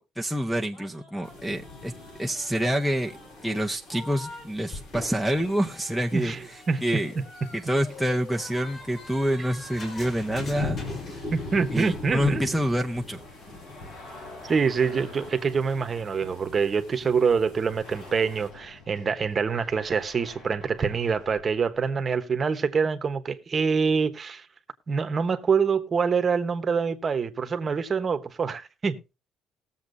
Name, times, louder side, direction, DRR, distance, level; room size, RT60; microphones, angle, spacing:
voice 1, 0.0-1.9 2.2-3.2 3.4-6.3 6.8-7.1 7.5-10.8 11.7-13.2, equal, ahead, 0.6 m, -27 dB
Fa-La-La-La-Launcher - Elves at Play, 0.7-4.5 4.7-11.4 11.7-12.0, left 2 dB, 35° left, 4.5 m, -45 dB
sound 1, 1.2-18.5, left 2 dB, 85° left, 7.1 m, -42 dB
voice 2, 6.1-6.8 7.1-7.2 11.3-12.4 14.4-24.5 24.9-29.1, right 5 dB, 25° right, 1.0 m, -25 dB
sound 2, 7.1-22.2, left 2 dB, 65° left, 7.7 m, -49 dB
20.0 x 7.3 x 2.6 m
cardioid pair, 155°, 0 cm